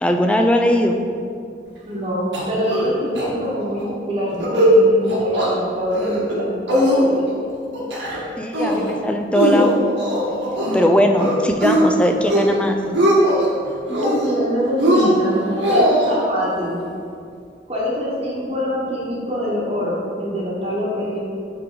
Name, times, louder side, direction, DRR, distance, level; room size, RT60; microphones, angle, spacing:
voice 1, 0.0-1.0 8.4-9.7 10.7-12.8, equal, 5° left, 4 dB, 0.4 m, -19 dB
voice 2, 1.9-7.8 13.9-16.8 17.7-21.2, equal, 35° right, -6 dB, 1.3 m, -25 dB
sound 1, 2.3-2.9 3.2-3.3 3.6-3.9 4.3-4.7 5.1-5.5 5.9-6.4 6.7-7.4 7.7-8.2 8.5-8.9 9.3-10.9 11.2-11.8 12.2-12.6 12.8-13.5 13.9-14.4 14.8-16.1, equal, 90° right, 1.7 m, -19 dB
8.5 x 3.8 x 4.6 m, 2.3 s
head